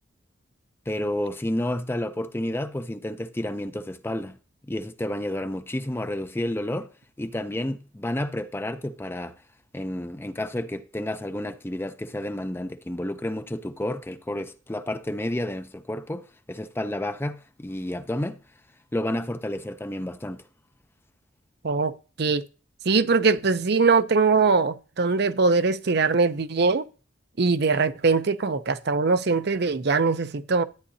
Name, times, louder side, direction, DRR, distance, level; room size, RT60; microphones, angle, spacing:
voice 1, 0.9-4.4 4.7-6.9 7.2-9.4 9.7-18.4 18.9-20.4, left 1 dB, 10° left, 0.5 m, -30 dB
voice 2, 22.9-26.8 27.4-30.6, right 4 dB, 55° right, 0.6 m, -22 dB
12.5 x 9.2 x 2.7 m
head